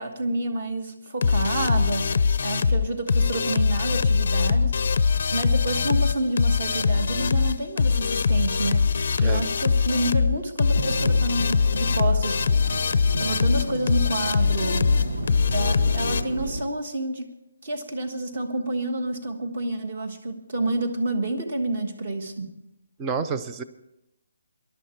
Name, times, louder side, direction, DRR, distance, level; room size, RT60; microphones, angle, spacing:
voice 1, 0.0-4.9 5.3-12.4 13.2-14.9 15.5-17.3 17.6-22.5, right 2 dB, 30° right, 6 dB, 1.5 m, -29 dB
sound 1, 1.2-16.2, left 5 dB, 35° left, 0.6 m, -22 dB
Thunderstorm / Rain, 10.7-16.6, right 1 dB, 70° right, 1.9 m, -33 dB
voice 2, 23.0-23.6, right 5 dB, 10° right, 9 dB, 0.5 m, -29 dB
20.5 x 11.5 x 4.5 m, 0.88 s
hypercardioid pair, 180°, 0 cm